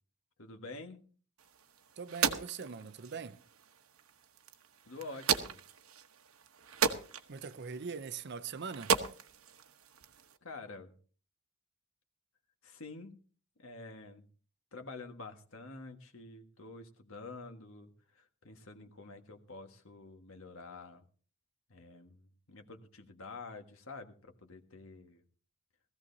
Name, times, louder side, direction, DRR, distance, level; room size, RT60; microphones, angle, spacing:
voice 1, 0.4-1.0 4.9-5.6 10.4-10.9 12.6-13.2 13.6-14.3 14.7-21.0 21.7-25.2, left 3 dB, 70° left, 1.6 m, -48 dB
sound 1, 1.4-10.4, right 6 dB, 80° right, 1.0 m, -37 dB
voice 2, 2.0-3.4 7.3-9.0, right 5 dB, 55° right, 0.6 m, -42 dB
19.5 x 15.0 x 2.7 m
head